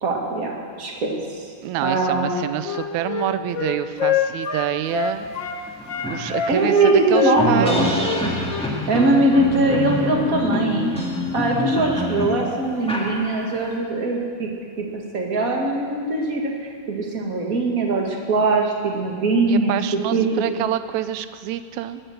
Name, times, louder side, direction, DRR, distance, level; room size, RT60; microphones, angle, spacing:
voice 1, 0.0-1.5 1.8-2.3 6.2-7.9 8.9-10.9 11.3-14.5 14.8-19.8 20.1-20.4, right 2 dB, 30° right, 0 dB, 2.0 m, -21 dB
voice 2, 1.6-5.3 6.1-8.2 19.5-22.0, right 12 dB, 75° right, 12 dB, 1.9 m, -27 dB
Wind instrument woodwind instrument, 2.2-5.6 5.9-9.1, left 8 dB, 60° left, 1.2 m, -26 dB
sound 1, 5.2-5.3 5.7-13.7, left 2 dB, ahead, 1.4 m, -26 dB
20.0 x 8.9 x 7.9 m, 2.1 s
omnidirectional pair, 3.5 m